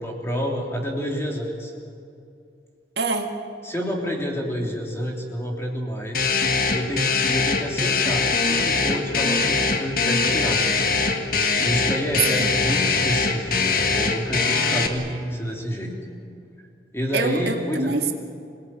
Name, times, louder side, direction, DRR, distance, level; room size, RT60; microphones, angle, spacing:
voice 1, 0.0-1.7 3.6-6.4 6.7-10.6 11.6-15.9 16.6-16.7 16.9-18.0, equal, 15° left, 0 dB, 3.3 m, -28 dB
voice 2, 3.0-3.3 12.4-12.5 17.1-18.1, right 3 dB, 75° right, 4 dB, 1.9 m, -25 dB
sound 1, 6.1-14.9, left 4 dB, 55° left, 1.7 m, -22 dB
26.0 x 18.0 x 9.1 m, 2.5 s
head